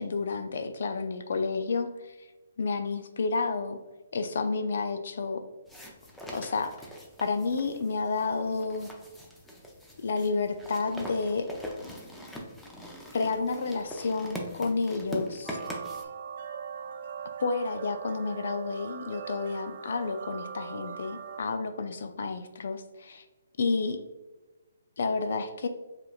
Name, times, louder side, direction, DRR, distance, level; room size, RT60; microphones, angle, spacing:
voice 1, 0.0-2.3 2.6-3.8 4.1-5.4 6.3-6.8 7.2-8.9 10.0-11.5 13.1-15.6 17.4-23.2 23.6-24.0 25.0-25.7, left 4 dB, 65° left, 7 dB, 0.4 m, -30 dB
sound 1, 5.7-16.0, equal, 5° left, 0.5 m, -42 dB
sound 2, 15.4-21.4, right 7 dB, 55° right, 0.4 m, -40 dB
4.8 x 3.0 x 2.3 m, 1.2 s
hypercardioid pair, 150°, 0 cm